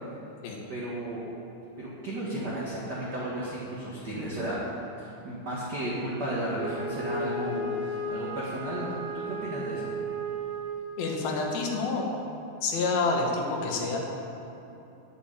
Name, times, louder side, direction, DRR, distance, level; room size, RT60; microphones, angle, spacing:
voice 1, 0.7-1.3 1.8-4.6 5.0-9.9, right 1 dB, 40° right, -7 dB, 1.5 m, -34 dB
Wind instrument woodwind instrument, 6.5-11.1, right 1 dB, 60° right, 2.5 m, -34 dB
voice 2, 11.0-12.0 12.6-14.0, left 3 dB, 90° left, -1 dB, 3.4 m, -28 dB
11.0 x 6.1 x 8.8 m, 2.9 s
omnidirectional pair, 4.1 m